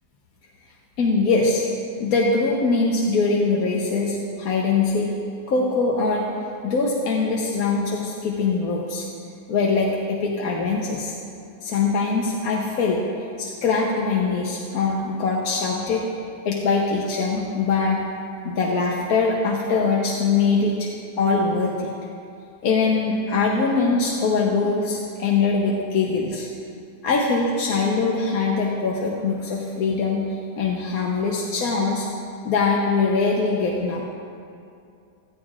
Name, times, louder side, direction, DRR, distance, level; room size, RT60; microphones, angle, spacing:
voice 1, 1.0-1.7 2.0-5.1 5.5-6.3 6.6-9.1 9.5-11.1 11.6-13.0 13.4-16.1 16.4-18.0 18.4-20.9 21.2-21.9 22.6-26.5 27.0-32.1 32.4-34.0, left 4 dB, 60° left, -2 dB, 1.3 m, -22 dB
16.0 x 13.5 x 2.4 m, 2.5 s
omnidirectional pair, 1.8 m